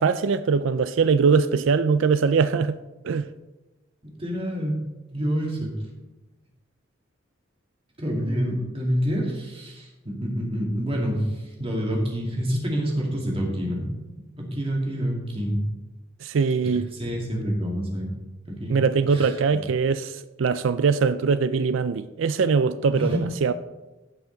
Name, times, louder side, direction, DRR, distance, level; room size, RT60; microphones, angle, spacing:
voice 1, 0.0-2.8 3.0-3.3 16.2-16.9 18.7-23.5, right 5 dB, 70° right, 0.4 m, -22 dB
voice 2, 4.2-4.8 5.1-5.7 8.0-13.9 14.4-15.6 16.6-18.1 18.5-18.8 19.1-19.6 22.9-23.2, equal, 30° right, 2.4 m, -27 dB
16.0 x 5.7 x 4.0 m
head